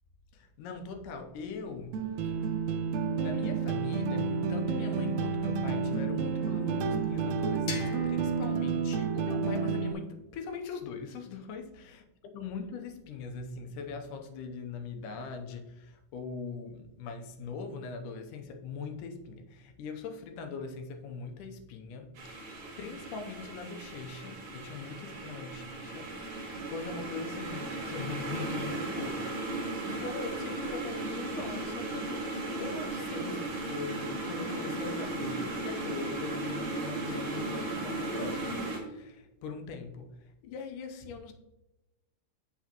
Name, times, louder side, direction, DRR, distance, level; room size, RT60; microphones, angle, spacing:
voice 1, 0.3-1.9 2.2-2.3 3.1-12.0 12.3-40.1 40.4-41.3, left 5 dB, 90° left, 5 dB, 2.4 m, -41 dB
sound 1, 1.9-9.9, right 5 dB, 75° right, 1.8 m, -30 dB
sound 2, 7.7-10.5, left 4 dB, 55° left, 1.5 m, -44 dB
sound 3, 22.2-38.8, right 2 dB, 45° right, 2.1 m, -36 dB
8.2 x 6.2 x 2.9 m, 0.97 s
omnidirectional pair, 3.6 m